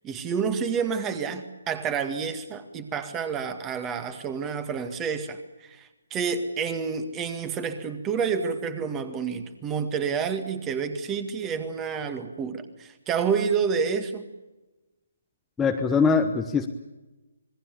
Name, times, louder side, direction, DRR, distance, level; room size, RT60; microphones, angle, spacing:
voice 1, 0.0-14.3, right 6 dB, 15° right, 10 dB, 1.9 m, -29 dB
voice 2, 15.6-16.7, left 5 dB, 10° left, 3 dB, 1.1 m, -22 dB
27.0 x 20.5 x 7.1 m, 1.1 s
figure-of-eight pair, 140°, 0 cm